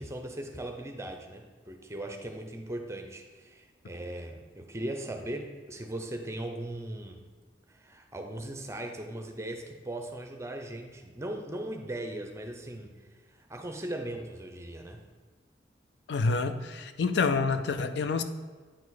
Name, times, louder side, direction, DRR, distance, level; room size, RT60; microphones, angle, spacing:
voice 1, 0.0-7.3 7.7-15.0, right 1 dB, 15° right, 4 dB, 0.6 m, -39 dB
voice 2, 16.1-18.2, left 4 dB, 65° left, 9 dB, 0.4 m, -27 dB
9.0 x 4.8 x 4.0 m, 1.5 s
head